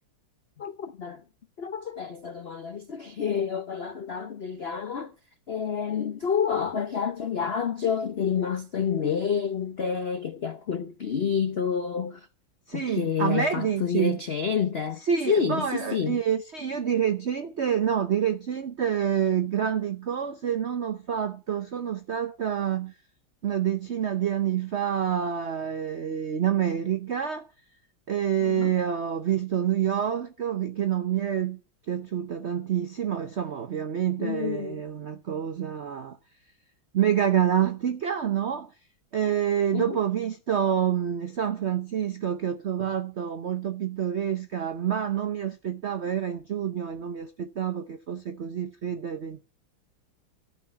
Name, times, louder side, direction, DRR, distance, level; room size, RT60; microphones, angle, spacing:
voice 1, 0.6-1.2 1.6-5.1 5.5-12.3 12.7-16.2 28.4-28.7 34.2-34.8 39.7-40.0, left 7 dB, 75° left, 0.5 m, -29 dB
voice 2, 12.7-14.2 15.1-22.9 23.4-27.5 28.1-31.6 31.9-36.2 36.9-38.7 39.1-49.5, right 9 dB, 70° right, 0.6 m, -27 dB
14.0 x 6.0 x 9.7 m
omnidirectional pair, 2.2 m